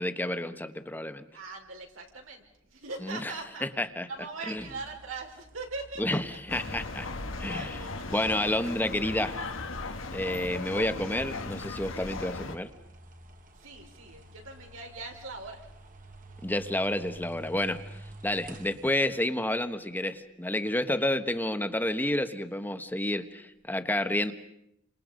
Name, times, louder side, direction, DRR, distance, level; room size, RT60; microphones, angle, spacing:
voice 1, 0.0-1.2 3.0-3.3 3.6-4.1 4.5-4.6 6.0-7.1 7.4-7.8 8.1-9.4 10.1-12.7 16.4-17.8 18.2-24.3, left 1 dB, 10° left, 9 dB, 1.3 m, -30 dB
voice 2, 1.3-2.4 2.7-3.7 3.9-6.2 7.5-8.1 10.3-10.6 13.5-15.7 18.3-18.5 21.0-21.1, right 3 dB, 85° right, 1 dB, 5.6 m, -41 dB
sound 1, 4.6-19.0, right 1 dB, 40° right, 1.7 m, -50 dB
sound 2, 6.5-12.6, left 3 dB, 75° left, 1.7 m, -37 dB
30.0 x 26.5 x 5.3 m, 0.79 s
head